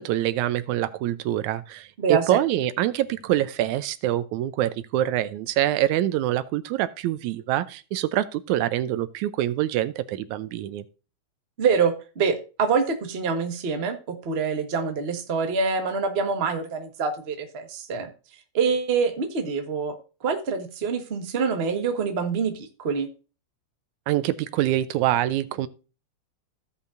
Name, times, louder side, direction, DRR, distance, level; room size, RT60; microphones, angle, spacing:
voice 1, 0.0-10.8 24.1-25.7, right 13 dB, 85° right, 2.1 m, -25 dB
voice 2, 11.6-18.1 18.5-19.9 20.2-23.1, right 5 dB, 40° right, 0.9 m, -25 dB
16.0 x 5.6 x 2.5 m
omnidirectional pair, 3.3 m